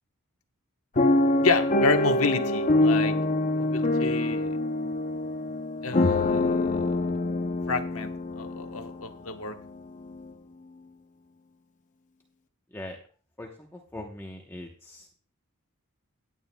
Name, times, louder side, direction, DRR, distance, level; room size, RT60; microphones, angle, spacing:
sound 1, 1.0-9.1 9.7-9.8 10.0-10.3, left 2 dB, 35° left, 0.7 m, -25 dB
voice 1, 1.4-3.1 3.5-4.5 5.8-7.0 7.7-8.1 8.4-9.6, left 4 dB, 75° left, 6 dB, 1.2 m, -29 dB
voice 2, 13.4-15.2, left 1 dB, 10° left, 1 dB, 0.9 m, -41 dB
18.0 x 9.3 x 2.2 m, 0.41 s
head